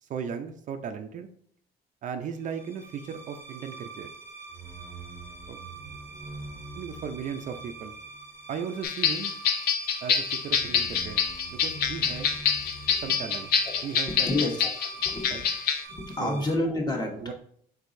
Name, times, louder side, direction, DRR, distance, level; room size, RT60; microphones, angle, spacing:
voice 1, 0.0-1.3 2.0-4.1 5.5-5.6 6.8-8.0 8.5-9.3 10.0-11.2 11.5-12.3 13.0-13.5 13.8-14.3 15.3-15.4 16.2-16.4 17.2-17.3, right 7 dB, 50° right, 7 dB, 0.4 m, -36 dB
sound 1, 2.4-16.6, right 3 dB, 15° right, 0.7 m, -44 dB
sound 2, 8.8-15.8, left 7 dB, 65° left, 0.6 m, -26 dB
voice 2, 14.0-15.5 15.9-17.3, left 2 dB, 25° left, 1 dB, 1.1 m, -30 dB
4.5 x 4.0 x 2.6 m, 0.62 s
cardioid pair, 110°, 17 cm